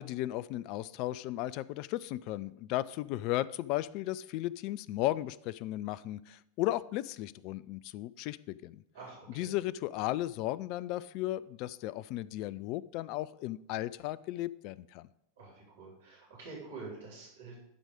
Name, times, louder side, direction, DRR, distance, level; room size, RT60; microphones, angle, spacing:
voice 1, 0.0-8.8 9.4-15.1, left 15 dB, 40° left, 19 dB, 0.3 m, -35 dB
voice 2, 8.9-9.5 15.4-17.5, right 3 dB, 60° right, -3 dB, 3.7 m, -47 dB
11.5 x 4.7 x 5.1 m, 0.79 s
figure-of-eight pair, 90°, 0 cm